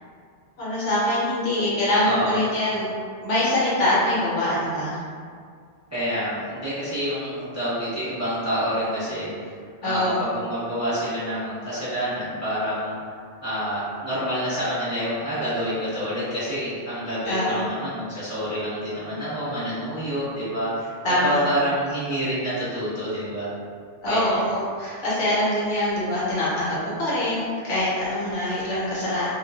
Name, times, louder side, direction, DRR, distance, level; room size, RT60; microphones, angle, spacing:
voice 1, 0.6-2.9 3.2-5.0 9.8-10.2 17.3-17.6 21.0-21.4 24.0-29.3, left 1 dB, 75° left, -9 dB, 1.1 m, -24 dB
voice 2, 2.0-2.4 5.9-9.5 9.8-13.1 13.4-20.9 21.2-23.5 24.0-24.4, equal, 15° right, -14 dB, 0.8 m, -27 dB
2.4 x 2.3 x 2.3 m, 2.1 s
omnidirectional pair, 1.3 m